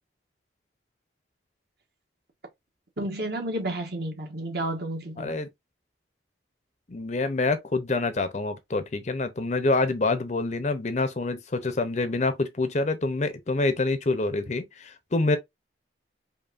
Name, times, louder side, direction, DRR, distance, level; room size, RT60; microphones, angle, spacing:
voice 1, 3.0-5.4, right 1 dB, 55° right, 1.3 m, -31 dB
voice 2, 5.2-5.5 6.9-15.4, left 3 dB, 40° left, 0.6 m, -26 dB
5.0 x 2.6 x 2.5 m
head